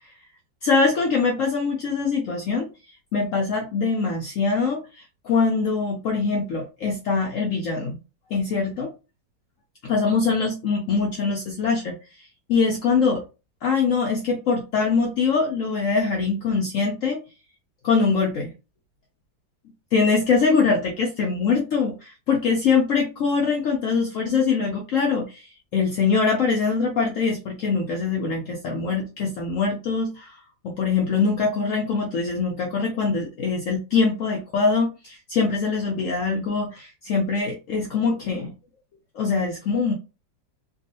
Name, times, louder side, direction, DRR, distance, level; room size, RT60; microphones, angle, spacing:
voice 1, 0.6-2.7 3.1-8.0 8.3-8.9 9.8-11.9 12.5-13.2 13.6-17.2 17.8-18.5 19.9-30.3 30.6-38.5 39.1-39.9, left 4 dB, 85° left, 1 dB, 0.7 m, -23 dB
3.4 x 2.3 x 2.6 m, 0.30 s
omnidirectional pair, 2.0 m